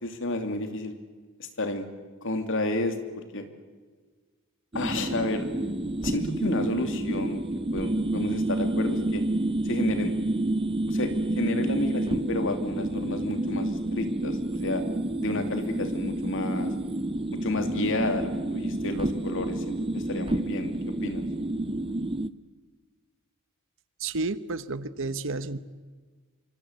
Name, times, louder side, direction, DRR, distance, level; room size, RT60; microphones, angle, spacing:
voice 1, 0.0-0.9 1.4-1.9 2.2-3.4 4.7-5.5 6.0-7.4 7.7-9.2 9.6-10.1 10.9-11.1 11.3-14.8 15.2-16.7 17.4-20.7 21.0-21.2, left 2 dB, 60° left, 7 dB, 2.9 m, -31 dB
sound 1, 4.7-22.3, right 1 dB, 25° right, 0.7 m, -29 dB
voice 2, 24.0-25.6, right 3 dB, 60° right, 14 dB, 1.1 m, -31 dB
25.5 x 24.5 x 8.2 m, 1.5 s
head